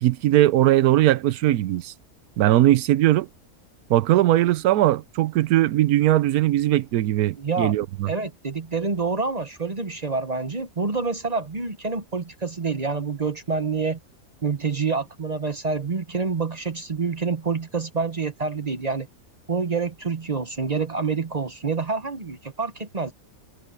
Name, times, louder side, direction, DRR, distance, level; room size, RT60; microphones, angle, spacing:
voice 1, 0.0-1.9 2.4-3.3 3.9-8.1, right 14 dB, 80° right, 1.1 m, -19 dB
voice 2, 7.4-7.7 8.1-14.0 14.4-19.1 19.5-23.1, right 4 dB, 30° right, 0.8 m, -27 dB
omnidirectional pair, 1.6 m